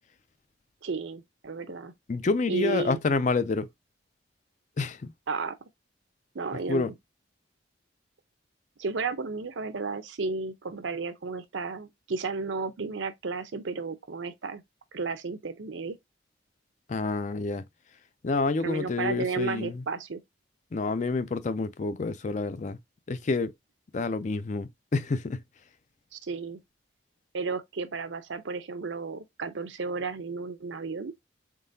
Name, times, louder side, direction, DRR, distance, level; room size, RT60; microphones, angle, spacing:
voice 1, 0.8-1.9 2.5-3.0 5.3-5.6 6.3-6.9 8.8-14.6 14.9-16.0 18.6-20.2 26.1-26.6 27.3-31.1, right 4 dB, 85° right, 0.7 m, -33 dB
voice 2, 2.1-3.7 4.8-5.1 6.7-6.9 16.9-17.6 18.2-19.8 20.7-22.8 23.1-23.5 23.9-25.4, left 3 dB, 40° left, 0.4 m, -28 dB
3.8 x 3.7 x 2.6 m
head